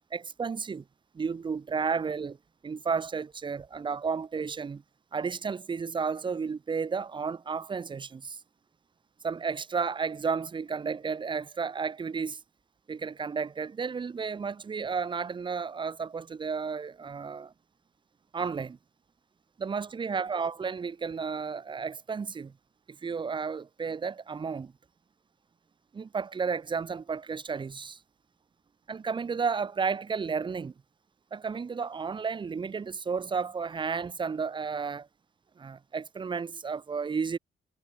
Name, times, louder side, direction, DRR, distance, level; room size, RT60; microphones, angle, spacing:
voice 1, 0.1-0.8 1.1-2.4 2.6-4.8 5.1-8.4 9.2-12.4 12.9-17.5 18.3-18.8 19.6-22.5 23.0-24.7 25.9-28.0 28.9-30.7 31.3-35.1 35.6-37.4, right 5 dB, 25° right, 0.4 m, -32 dB
wide cardioid pair, 125°, 20 cm